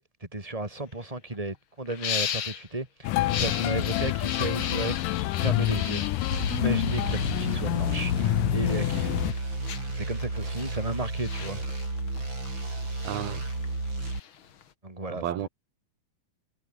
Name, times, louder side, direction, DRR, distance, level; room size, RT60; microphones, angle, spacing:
voice 1, 0.0-5.0 5.4-6.1 6.5-8.1 8.5-9.2 9.9-11.6 14.8-15.5, right 2 dB, 10° right, 3.6 m, -33 dB
sound 1, 0.8-0.9 1.1-1.4 1.9-2.7 3.2-8.4 8.9-14.7, left 8 dB, 50° left, 1.6 m, -36 dB
sound 2, 3.0-9.3, left 16 dB, 75° left, 2.2 m, -27 dB
sound 3, 6.3-14.2, right 2 dB, 30° right, 7.5 m, -33 dB
voice 2, 13.0-13.4 15.1-15.5, right 10 dB, 80° right, 3.8 m, -32 dB
omnidirectional pair, 4.3 m